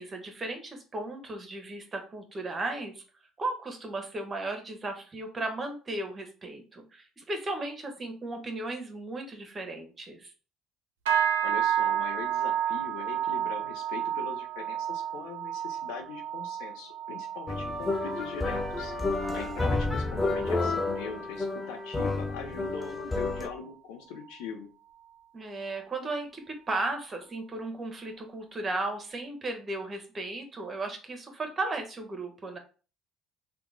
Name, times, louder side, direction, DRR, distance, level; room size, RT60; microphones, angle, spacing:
voice 1, 0.0-3.0 3.4-10.3 19.6-19.7 25.3-32.6, right 2 dB, 35° right, 5 dB, 1.0 m, -35 dB
sound 1, 11.1-20.6 20.9-21.3 21.7-22.1 22.6-22.7, right 9 dB, 85° right, 0.5 m, -32 dB
voice 2, 11.4-19.0 19.3-24.7, left 6 dB, 75° left, 4 dB, 0.7 m, -41 dB
sound 2, 17.5-23.5, left 3 dB, 20° left, 0.5 m, -30 dB
2.9 x 2.3 x 3.8 m, 0.36 s
hypercardioid pair, 60°, 0 cm